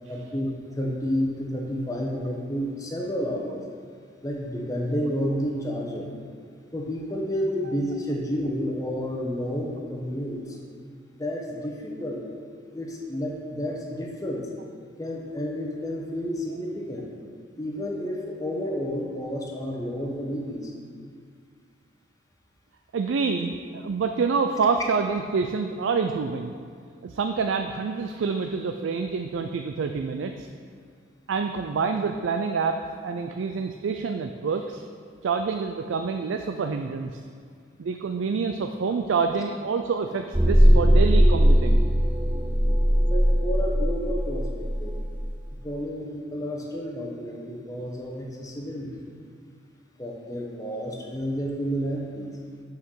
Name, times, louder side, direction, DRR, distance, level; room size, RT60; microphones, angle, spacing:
voice 1, 0.1-3.6 4.2-6.1 6.7-10.6 11.2-12.2 12.7-14.5 15.0-17.1 17.6-20.7 43.1-44.9 45.6-49.1 50.0-52.3, equal, 20° left, -1 dB, 1.0 m, -30 dB
voice 2, 22.9-26.5 27.0-30.5 31.3-34.8 35.2-37.2 37.8-41.8, right 5 dB, 90° right, 6 dB, 0.4 m, -27 dB
sound 1, 40.3-45.3, equal, 10° right, 0.4 m, -19 dB
6.4 x 5.8 x 6.3 m, 2.1 s
head